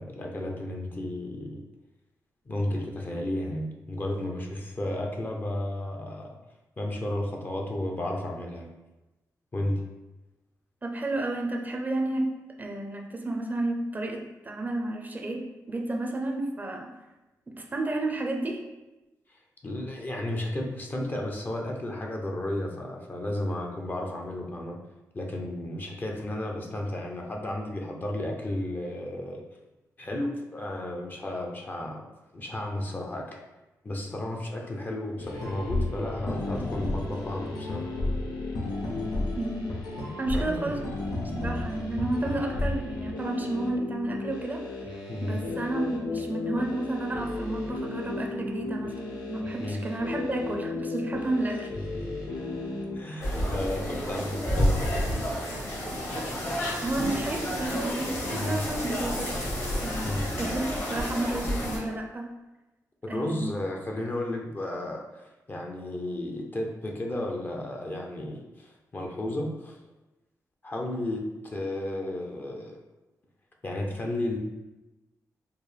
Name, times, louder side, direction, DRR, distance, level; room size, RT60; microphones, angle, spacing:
voice 1, 0.0-1.6 2.5-6.4 6.8-8.7 9.5-9.8 19.6-24.8 25.1-29.4 30.0-32.0 32.3-33.4 33.8-37.9 40.3-40.8 45.1-45.4 49.6-49.9 51.9-52.2 52.9-54.8 58.3-58.7 60.0-60.3 63.0-69.8 70.6-72.8 73.6-74.4, left 1 dB, 30° left, 0 dB, 0.6 m, -33 dB
voice 2, 10.8-16.9 17.5-18.7 39.4-39.7 40.2-40.9 41.3-51.7 53.1-53.3 56.8-59.4 59.8-62.4 63.1-63.5, right 2 dB, 25° right, 1 dB, 0.5 m, -31 dB
sound 1, 35.2-53.0, left 2 dB, 90° left, 0.7 m, -33 dB
sound 2, 53.2-61.8, equal, 45° left, 1.2 m, -30 dB
4.4 x 2.0 x 3.3 m, 1.0 s
cardioid pair, 100°, 6 cm